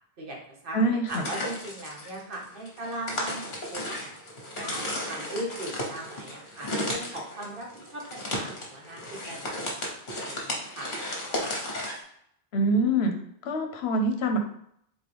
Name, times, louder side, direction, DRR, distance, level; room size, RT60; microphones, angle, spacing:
voice 1, 0.2-4.1 4.5-9.6 9.8-9.9 10.2-10.9, right 1 dB, 55° right, -1 dB, 1.2 m, -39 dB
voice 2, 0.7-1.2 12.5-13.1 13.4-14.4, right 1 dB, 80° left, 5 dB, 0.9 m, -24 dB
sound 1, 1.1-12.0, left 1 dB, 50° left, 1.2 m, -34 dB
4.0 x 3.7 x 3.4 m, 0.71 s
omnidirectional pair, 1.1 m